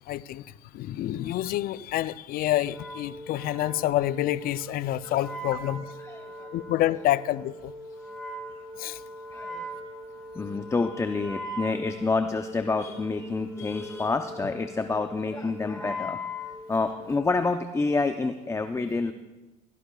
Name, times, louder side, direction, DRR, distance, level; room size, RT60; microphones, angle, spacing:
voice 1, 0.1-0.4 0.7-6.0 6.5-7.7 8.8-9.0, left 14 dB, 60° left, 17 dB, 0.5 m, -28 dB
Wind instrument woodwind instrument, 2.6-17.4, equal, ahead, 1.8 m, -40 dB
voice 2, 6.0-6.5 9.3-9.8 10.3-16.2 16.5-19.1, left 3 dB, 15° left, 8 dB, 0.7 m, -28 dB
18.0 x 17.0 x 2.4 m, 1.1 s
supercardioid pair, 80°, 17 cm